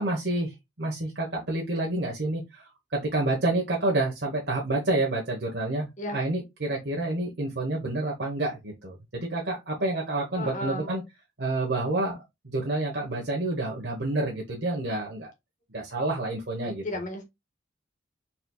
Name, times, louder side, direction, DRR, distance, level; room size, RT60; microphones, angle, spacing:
voice 1, 0.0-11.0 11.4-12.2 12.4-15.3 15.7-16.8, right 2 dB, 65° right, 1.2 m, -29 dB
voice 2, 10.3-11.0 16.6-17.2, left 1 dB, 40° left, 1.5 m, -34 dB
4.4 x 4.1 x 2.3 m
head